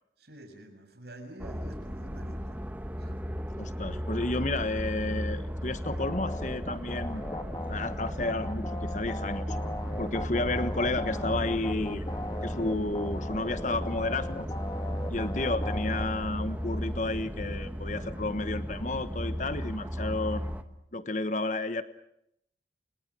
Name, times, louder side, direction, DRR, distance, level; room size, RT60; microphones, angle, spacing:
voice 1, 0.2-2.6 3.0-3.3 10.1-10.2 14.9-15.2, right 1 dB, 60° right, 6 dB, 6.8 m, -48 dB
sound 1, 1.4-20.6, equal, 10° right, 1.4 m, -35 dB
voice 2, 3.6-7.2 7.7-9.6 10.0-12.1 12.4-14.5 15.1-20.5 20.9-21.8, left 2 dB, 40° left, 11 dB, 1.3 m, -32 dB
sound 2, 5.8-16.1, left 1 dB, 20° left, 2.3 m, -38 dB
29.0 x 28.0 x 6.3 m, 0.77 s
head